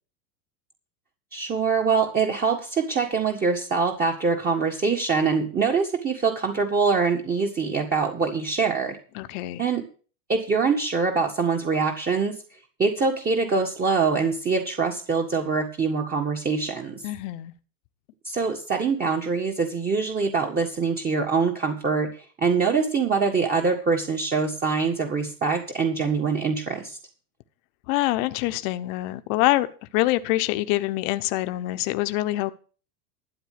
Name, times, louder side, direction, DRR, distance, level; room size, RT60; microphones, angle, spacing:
voice 1, 1.3-9.0 9.6-9.8 10.3-12.3 12.8-17.0 18.2-27.0, right 5 dB, 20° right, 1.7 m, -24 dB
voice 2, 9.2-9.6 17.0-17.5 27.9-29.7 29.9-32.5, left 17 dB, 50° left, 1.1 m, -25 dB
13.0 x 9.1 x 5.0 m
hypercardioid pair, 120°, 50 cm